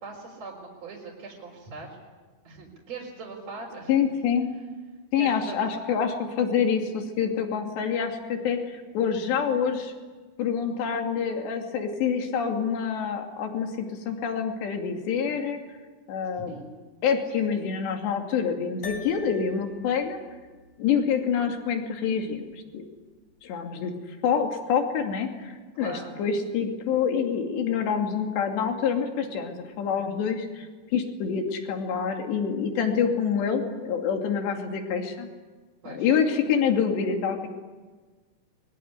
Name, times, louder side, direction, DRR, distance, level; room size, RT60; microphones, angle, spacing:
voice 1, 0.0-2.0 2.5-3.9 5.2-5.6 16.5-16.7 25.8-26.2 35.8-36.1, right 3 dB, 40° right, -2 dB, 5.2 m, -40 dB
voice 2, 3.9-4.5 5.1-9.9 10.4-15.6 16.1-16.5 17.0-20.2 20.8-22.8 23.4-35.3 35.9-37.5, left 7 dB, 75° left, 3 dB, 4.8 m, -27 dB
sound 1, 18.8-23.4, left 2 dB, 55° left, 5.9 m, -46 dB
23.5 x 23.0 x 9.8 m, 1.3 s
omnidirectional pair, 5.0 m